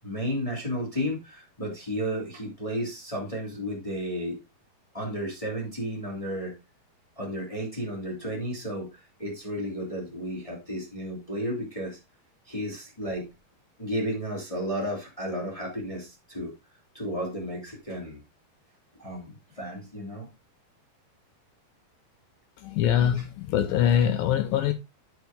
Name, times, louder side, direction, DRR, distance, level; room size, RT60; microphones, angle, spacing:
voice 1, 0.0-4.4 4.9-6.5 7.2-8.9 9.2-12.0 12.5-13.3 13.8-16.5 16.9-18.2 19.0-20.3, equal, 35° left, 0.5 m, -33 dB
voice 2, 22.6-24.7, left 10 dB, 85° left, 2.1 m, -23 dB
10.5 x 4.6 x 3.4 m
omnidirectional pair, 4.7 m